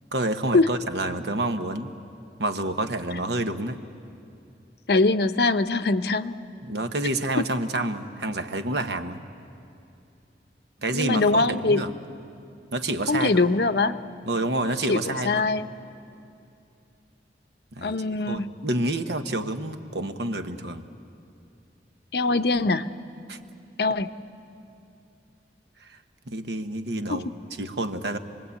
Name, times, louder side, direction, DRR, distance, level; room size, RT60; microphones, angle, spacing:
voice 1, 0.1-1.9 2.4-3.8 6.6-9.2 10.8-12.0 12.7-13.4 14.3-15.5 17.8-17.9 18.3-20.9 23.3-23.4 25.8-26.0 26.3-27.3 27.6-28.2, right 2 dB, 75° right, 8 dB, 1.1 m, -28 dB
voice 2, 4.9-6.3 10.9-11.8 13.1-14.0 14.9-15.7 17.8-18.5 22.1-22.9 23.8-24.1 27.1-27.2, left 3 dB, 65° left, 11 dB, 0.7 m, -22 dB
28.5 x 20.5 x 8.5 m, 2.6 s
head